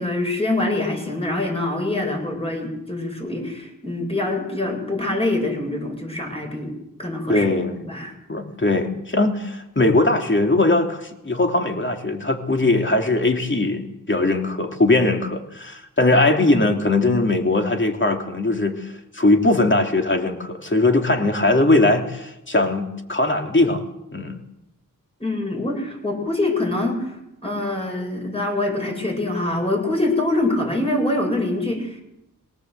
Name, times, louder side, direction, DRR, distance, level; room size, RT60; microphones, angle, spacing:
voice 1, 0.0-6.7 7.0-7.5 7.8-8.1 25.2-27.2 27.4-32.0, left 2 dB, 15° left, 1 dB, 7.7 m, -24 dB
voice 2, 7.3-7.8 8.3-23.8 24.1-24.4, left 2 dB, 35° left, 3 dB, 3.2 m, -20 dB
23.5 x 18.0 x 8.2 m, 0.87 s
wide cardioid pair, 75°, 34 cm